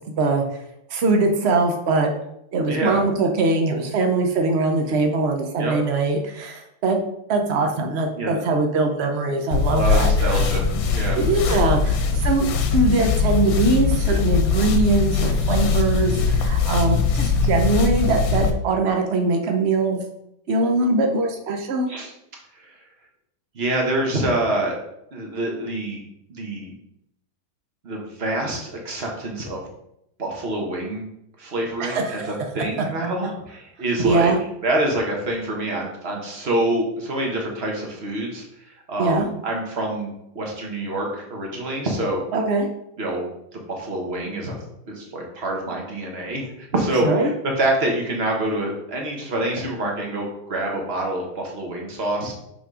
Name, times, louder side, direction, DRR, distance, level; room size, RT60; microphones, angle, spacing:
voice 1, 0.1-0.4 0.9-2.1 2.5-7.0 7.3-10.3 11.1-12.0 12.2-20.0 20.5-21.9 31.8-32.3 34.0-34.4 39.0-39.3 42.3-42.7 47.0-47.3, right 3 dB, 85° right, 3 dB, 0.5 m, -22 dB
voice 2, 2.6-3.0 5.6-5.7 8.2-8.4 9.7-11.2 21.9-22.1 22.6-22.7 23.5-24.8 25.1-26.0 26.3-26.7 27.8-29.7 30.2-31.1 31.4-34.3 34.6-38.4 38.9-42.2 43.0-44.6 44.9-52.3, right 1 dB, 35° right, 0 dB, 1.3 m, -26 dB
sound 1, 9.5-18.5, left 5 dB, 75° left, 1.4 m, -21 dB
5.9 x 4.2 x 4.8 m, 0.79 s
omnidirectional pair, 2.2 m